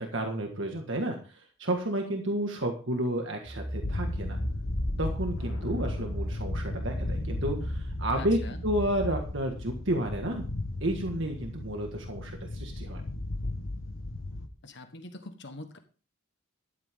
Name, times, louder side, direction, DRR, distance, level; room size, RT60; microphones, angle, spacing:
voice 1, 0.0-4.4 5.0-8.4 8.6-10.5 10.8-13.0, right 1 dB, 60° right, 3 dB, 1.7 m, -31 dB
sound 1, 3.5-9.2, equal, 10° right, 0.9 m, -36 dB
sound 2, 3.8-14.5, left 2 dB, 70° left, 1.2 m, -36 dB
sound 3, 5.4-7.5, left 1 dB, 90° left, 2.0 m, -51 dB
voice 2, 8.1-8.6 14.6-15.8, left 2 dB, 55° left, 7 dB, 1.3 m, -43 dB
13.5 x 11.5 x 3.7 m, 0.36 s
head